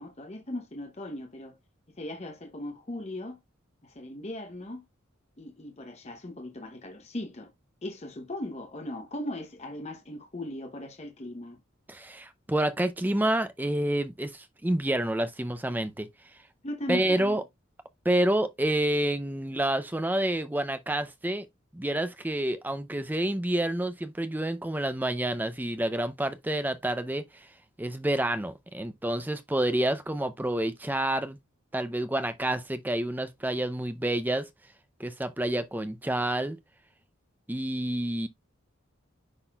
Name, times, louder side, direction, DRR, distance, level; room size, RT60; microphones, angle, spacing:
voice 1, 0.0-1.6 2.0-3.4 3.8-4.8 5.4-7.5 7.8-11.6 16.6-17.4, left 1 dB, 30° left, 0.8 m, -38 dB
voice 2, 11.9-16.1 16.9-17.4 18.0-21.5 21.7-27.2 27.8-31.4 31.7-34.5 35.0-36.6 37.5-38.3, right 1 dB, 10° right, 0.5 m, -28 dB
9.8 x 4.1 x 2.3 m
head